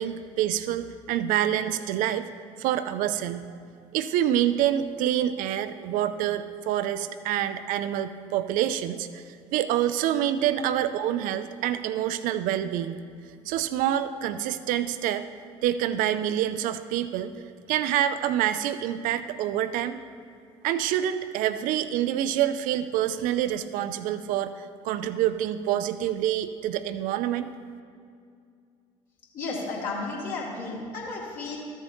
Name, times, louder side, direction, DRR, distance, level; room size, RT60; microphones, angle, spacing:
voice 1, 0.0-2.3 2.6-3.5 3.9-9.2 9.5-13.0 13.5-15.2 15.6-17.3 17.7-20.0 20.6-27.5, right 11 dB, 55° right, 12 dB, 0.5 m, -27 dB
voice 2, 29.3-31.6, left 3 dB, 50° left, -6 dB, 2.2 m, -33 dB
14.0 x 7.1 x 2.8 m, 2.3 s
figure-of-eight pair, 55°, 17 cm